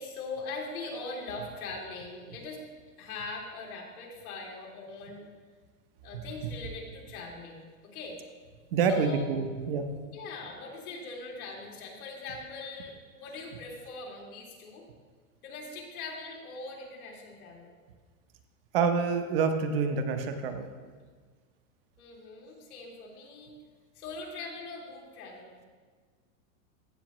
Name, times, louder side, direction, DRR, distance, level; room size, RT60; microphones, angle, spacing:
voice 1, 0.0-2.6 3.0-5.3 6.0-8.2 8.9-9.3 10.0-14.8 15.4-17.7 22.0-23.5 23.9-25.5, left 3 dB, 85° left, -1 dB, 2.7 m, -41 dB
voice 2, 8.7-9.9 18.7-20.7, right 5 dB, 40° right, 7 dB, 0.7 m, -27 dB
15.0 x 7.0 x 3.0 m, 1.5 s
supercardioid pair, 175°, 43 cm